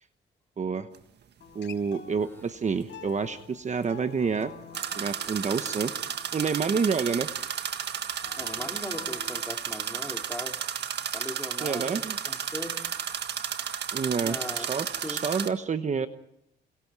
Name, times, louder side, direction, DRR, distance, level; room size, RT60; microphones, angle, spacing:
voice 1, 0.6-0.9 1.5-4.5 4.9-7.3 11.6-12.2 13.9-16.1, right 5 dB, 35° right, 10 dB, 1.1 m, -29 dB
sound 1, 0.9-1.0 4.7-15.5, right 8 dB, 60° right, 1.7 m, -33 dB
Acoustic guitar, 1.4-6.6 8.2-9.4, left 6 dB, 65° left, 5.0 m, -47 dB
voice 2, 8.4-10.6 11.1-12.8 14.2-14.7 15.0-15.2, left 1 dB, 10° left, 3 dB, 3.0 m, -39 dB
28.5 x 27.0 x 4.8 m, 0.76 s
cardioid pair, 90°, 20 cm